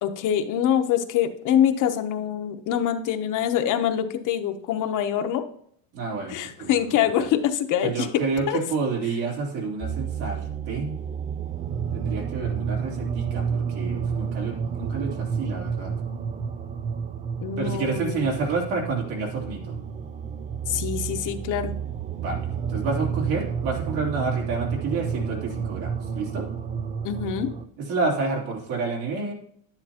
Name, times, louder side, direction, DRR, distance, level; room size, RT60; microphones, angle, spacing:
voice 1, 0.0-5.5 6.3-8.1 8.5-8.6 17.4-18.4 20.7-21.7 27.0-27.5, left 9 dB, 45° left, 7 dB, 0.9 m, -25 dB
voice 2, 5.9-6.8 7.2-7.3 7.8-11.0 11.9-15.9 17.6-19.8 22.2-26.5 27.8-29.3, right 4 dB, 70° right, -1 dB, 3.4 m, -29 dB
sound 1, 9.8-27.7, right 7 dB, 20° right, 0.4 m, -30 dB
10.5 x 9.9 x 2.9 m, 0.65 s
cardioid pair, 135°, 42 cm